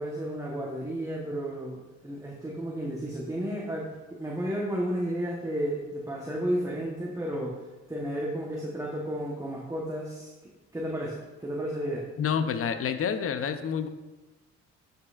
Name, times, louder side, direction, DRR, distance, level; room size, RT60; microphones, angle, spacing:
voice 1, 0.0-7.6 7.9-10.3 10.7-12.1, right 1 dB, 10° right, -3 dB, 1.1 m, -32 dB
voice 2, 12.2-13.9, left 7 dB, 50° left, 9 dB, 0.7 m, -28 dB
10.5 x 5.4 x 2.5 m, 1.1 s
cardioid pair, 90°, 30 cm